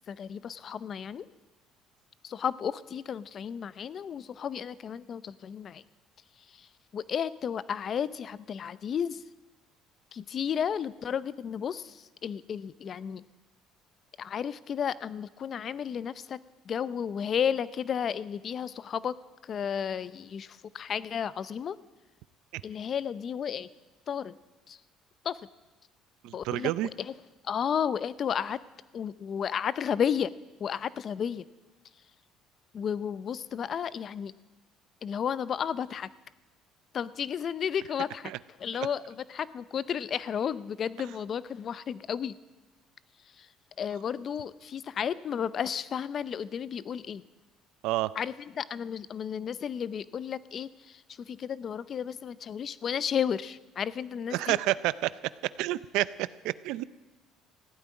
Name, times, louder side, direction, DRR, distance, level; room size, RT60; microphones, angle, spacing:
voice 1, 0.1-1.3 2.2-5.8 6.5-6.7 6.9-9.2 10.1-13.2 14.2-16.4 16.7-19.1 19.4-21.8 22.6-23.7 24.1-24.4 24.7-24.8 25.2-25.4 26.3-26.7 27.0-27.1 27.4-28.6 28.9-30.3 30.6-31.5 32.7-34.3 35.0-36.1 36.9-38.3 38.6-42.4 43.4-43.5 43.8-47.2 48.2-54.6, left 8 dB, 40° left, 18 dB, 0.5 m, -33 dB
voice 2, 26.2-26.9 38.2-38.4 38.7-38.9 47.8-48.1 54.3-55.1 55.6-56.8, right 16 dB, 80° right, 18 dB, 0.5 m, -29 dB
15.0 x 8.8 x 9.5 m, 1.2 s
cardioid pair, 125°, 0 cm